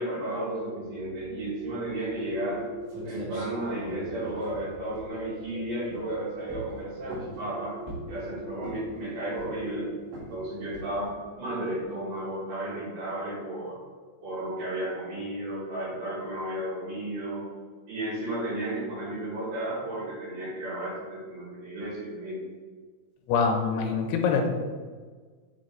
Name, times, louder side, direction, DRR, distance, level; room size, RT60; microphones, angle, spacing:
voice 1, 0.0-2.6 3.0-7.8 8.1-13.8 14.2-17.5 17.9-22.4, right 1 dB, 65° right, -8 dB, 3.7 m, -33 dB
sound 1, 0.8-11.8, right 2 dB, 45° right, 1.9 m, -42 dB
sound 2, 2.6-2.7 2.9-5.5 5.9-6.2 6.5-7.4 7.9-8.2 8.6-9.0 9.4-9.8 10.1-10.4 10.7-11.1, right 1 dB, 90° right, 4.1 m, -42 dB
voice 2, 23.3-24.5, left 5 dB, 85° left, 3 dB, 2.7 m, -24 dB
8.0 x 3.1 x 3.8 m, 1.5 s
omnidirectional pair, 4.8 m